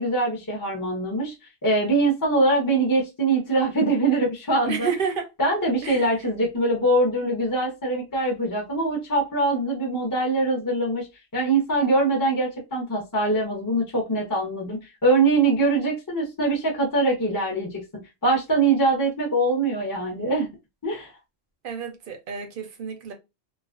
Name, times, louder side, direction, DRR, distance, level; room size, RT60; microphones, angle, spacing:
voice 1, 0.0-1.3 1.6-4.9 5.4-11.1 11.3-17.8 18.2-20.5 20.8-21.1, right 2 dB, 25° left, 0.5 m, -23 dB
voice 2, 4.6-5.3 5.8-6.1 21.6-23.1, right 6 dB, 55° right, 0.7 m, -30 dB
2.4 x 2.1 x 2.4 m
omnidirectional pair, 1.2 m